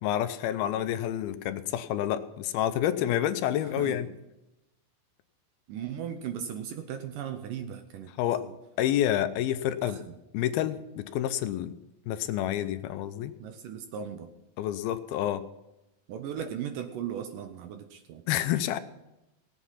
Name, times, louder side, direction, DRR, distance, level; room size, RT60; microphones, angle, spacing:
voice 1, 0.0-4.1 8.2-8.4 8.8-10.0 10.3-11.7 12.1-13.3 14.6-15.4 18.3-18.8, left 11 dB, 80° left, 11 dB, 2.5 m, -28 dB
voice 2, 3.6-4.2 5.7-8.6 9.8-10.2 13.4-14.3 16.1-18.2, right 9 dB, 75° right, 7 dB, 2.1 m, -37 dB
18.5 x 8.2 x 5.6 m, 0.95 s
omnidirectional pair, 4.5 m